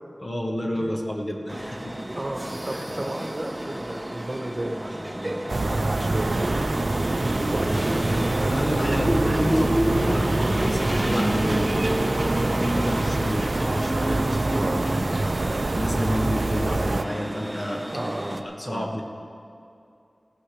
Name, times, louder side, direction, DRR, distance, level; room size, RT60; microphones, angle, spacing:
voice 1, 0.2-2.0 2.7-2.8 8.4-14.7 15.0-15.2 15.7-17.8 18.4-19.0, equal, 40° left, 0 dB, 1.5 m, -30 dB
sound 1, 1.5-18.4, right 1 dB, 20° right, 0.9 m, -29 dB
voice 2, 2.1-7.1 7.3-8.1 14.5-14.9 17.9-19.0, right 1 dB, 40° right, 2 dB, 1.3 m, -33 dB
sound 2, 5.5-17.0, right 2 dB, 65° right, 0.5 m, -26 dB
sound 3, 8.0-13.1, equal, 25° left, 3.4 m, -34 dB
16.5 x 15.0 x 3.4 m, 2.6 s
wide cardioid pair, 60°, 0 cm